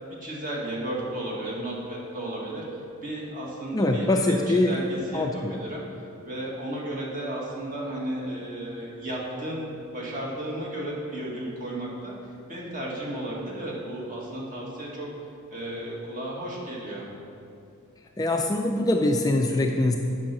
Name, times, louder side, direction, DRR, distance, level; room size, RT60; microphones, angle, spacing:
voice 1, 0.2-2.6 3.0-5.8 6.2-12.1 12.5-15.1 15.5-17.1, right 1 dB, 40° right, -4 dB, 1.9 m, -34 dB
voice 2, 3.7-4.8 5.1-5.6 18.2-20.0, left 2 dB, 15° left, 2 dB, 0.4 m, -23 dB
8.8 x 5.6 x 6.0 m, 2.5 s
head